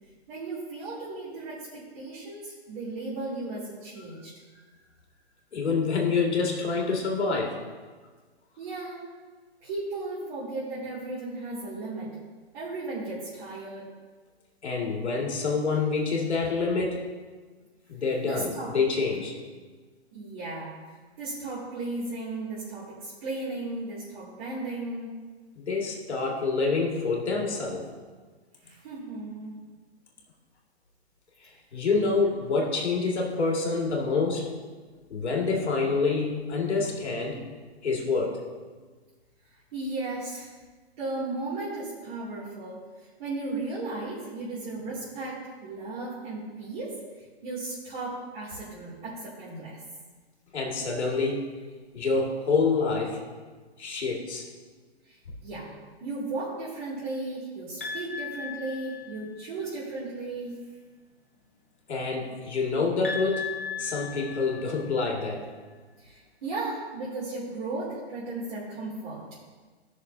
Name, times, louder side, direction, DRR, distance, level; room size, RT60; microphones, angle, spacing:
voice 1, 0.3-4.3 8.6-9.0 9.6-12.1 12.5-13.9 18.3-18.7 20.1-20.7 21.2-25.2 28.6-29.5 31.9-32.1 39.7-40.5 41.0-42.8 43.2-46.9 47.4-49.8 55.1-55.2 55.4-55.7 56.0-60.5 66.0-69.2, right 2 dB, 45° right, -11 dB, 2.7 m, -35 dB
voice 2, 5.5-7.6 14.6-17.0 17.9-19.3 25.6-27.9 31.4-34.5 35.1-37.4 37.8-38.4 50.5-51.5 51.9-53.2 53.8-54.4 61.9-63.5 63.8-65.5, left 4 dB, 90° left, -1 dB, 2.2 m, -27 dB
sound 1, 57.8-59.5 63.0-65.1, left 6 dB, 15° left, 0.3 m, -37 dB
15.0 x 6.4 x 2.7 m, 1.4 s
hypercardioid pair, 160°, 33 cm